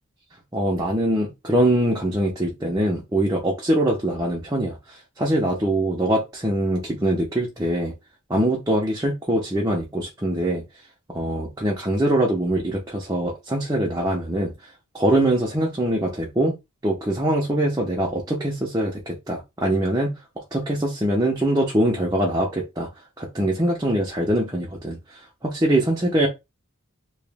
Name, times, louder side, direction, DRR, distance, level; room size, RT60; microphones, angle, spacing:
voice 1, 0.5-7.9 8.3-10.6 11.1-14.5 14.9-16.6 16.8-20.1 20.5-22.9 23.2-26.3, right 1 dB, 15° right, 0.7 m, -23 dB
3.0 x 3.0 x 3.4 m
head